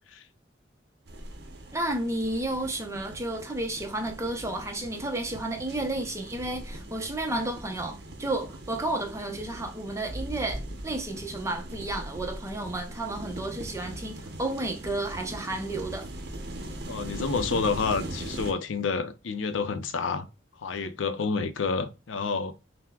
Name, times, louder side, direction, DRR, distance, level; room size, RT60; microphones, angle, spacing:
sound 1, 1.1-18.5, right 1 dB, 55° right, 0.6 m, -40 dB
voice 1, 1.7-16.1, right 2 dB, 15° right, 0.5 m, -32 dB
voice 2, 16.9-20.3 20.6-22.5, left 4 dB, 80° left, 0.5 m, -29 dB
5.6 x 2.1 x 2.2 m
head